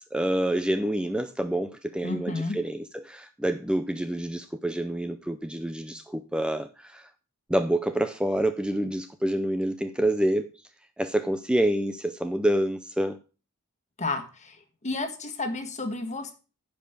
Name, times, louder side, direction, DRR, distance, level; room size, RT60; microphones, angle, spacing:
voice 1, 0.0-7.1 7.5-10.5 11.0-13.2, right 1 dB, 5° right, 0.5 m, -27 dB
voice 2, 2.0-2.6 14.0-14.6 14.8-16.3, left 2 dB, 35° left, 1.5 m, -31 dB
10.5 x 5.2 x 6.6 m
head